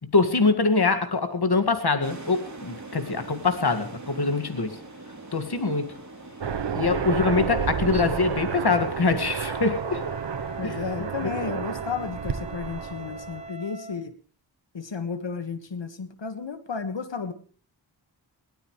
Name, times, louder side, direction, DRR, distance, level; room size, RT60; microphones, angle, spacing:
voice 1, 0.0-4.8 5.3-5.9 6.7-10.0 10.6-10.8 11.2-11.3, left 4 dB, 60° left, 8 dB, 2.1 m, -24 dB
sound 1, 2.0-11.3, right 2 dB, 40° right, 3.7 m, -45 dB
Aircraft, 6.4-13.5, right 7 dB, 70° right, 1.1 m, -30 dB
Wind instrument woodwind instrument, 9.4-14.1, right 2 dB, 15° right, 1.3 m, -41 dB
voice 2, 10.6-14.1 14.7-17.3, left 5 dB, 75° left, 10 dB, 1.8 m, -33 dB
22.5 x 17.5 x 3.3 m, 0.40 s
wide cardioid pair, 60°, 44 cm